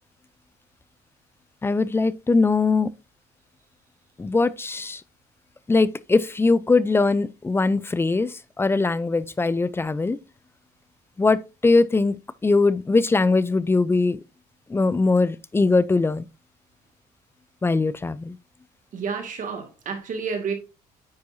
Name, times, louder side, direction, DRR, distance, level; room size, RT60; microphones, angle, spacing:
voice 1, 1.6-2.9 4.2-5.0 5.7-10.2 11.2-14.2 14.7-16.2 17.6-18.4, left 3 dB, 15° left, 0.4 m, -21 dB
voice 2, 18.9-20.5, right 5 dB, 50° right, 2.1 m, -30 dB
9.5 x 4.5 x 2.7 m
cardioid pair, 110°, 17 cm